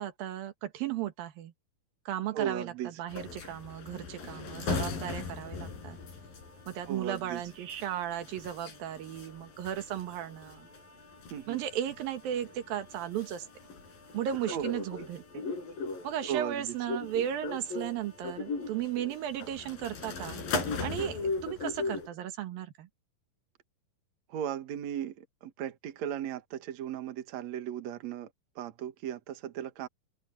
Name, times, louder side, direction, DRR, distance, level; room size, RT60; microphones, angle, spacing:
voice 1, 0.0-1.5 2.1-6.0 6.7-10.7 11.5-13.5 14.1-15.4 16.0-20.4 20.8-22.9, right 11 dB, 85° right, 3.4 m, -35 dB
voice 2, 2.3-2.9 6.9-7.4 11.3-11.6 14.5-14.7 16.3-16.7 24.3-28.3 28.6-29.9, right 10 dB, 60° right, 2.5 m, -36 dB
sound 1, 3.1-22.1, left 4 dB, 80° left, 6.3 m, -39 dB
omnidirectional pair, 4.0 m